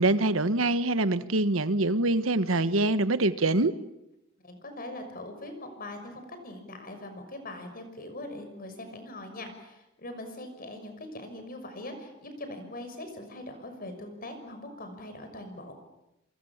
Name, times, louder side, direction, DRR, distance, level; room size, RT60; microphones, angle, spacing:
voice 1, 0.0-3.7, right 2 dB, 85° right, 12 dB, 1.4 m, -24 dB
voice 2, 4.4-15.7, left 1 dB, 45° left, 7 dB, 6.2 m, -41 dB
27.0 x 26.5 x 7.4 m, 0.90 s
head